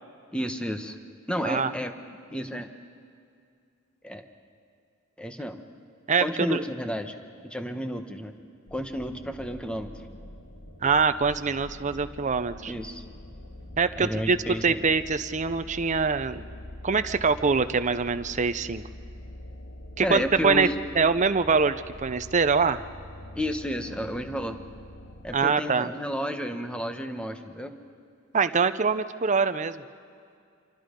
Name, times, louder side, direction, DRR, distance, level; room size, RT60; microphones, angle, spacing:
voice 1, 0.3-1.0 1.3-1.9 2.3-2.7 4.0-4.2 5.2-5.6 6.2-7.1 7.5-8.3 8.7-9.9 12.7-13.0 14.0-14.8 20.0-20.8 23.3-24.6 25.2-27.7, equal, 5° left, 6 dB, 1.2 m, -31 dB
sound 1, 8.7-25.3, left 1 dB, 90° left, 2.1 m, -44 dB
voice 2, 10.8-12.7 13.8-16.4 16.8-18.8 20.0-20.7 21.0-22.8 25.3-25.9 28.3-29.8, right 5 dB, 35° right, 11 dB, 0.7 m, -24 dB
27.0 x 24.5 x 5.3 m, 2.3 s
head